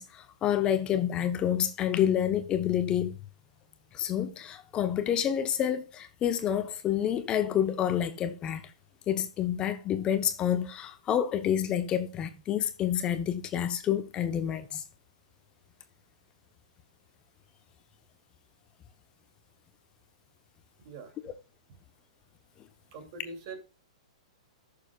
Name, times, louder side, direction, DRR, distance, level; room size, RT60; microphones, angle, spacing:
voice 1, 0.0-3.1 3.9-8.6 9.1-14.8, left 10 dB, 25° left, 1.0 m, -28 dB
voice 2, 20.8-21.2 22.9-23.6, right 3 dB, 50° right, 2.9 m, -43 dB
15.0 x 6.8 x 2.4 m
hypercardioid pair, 120°, 3 cm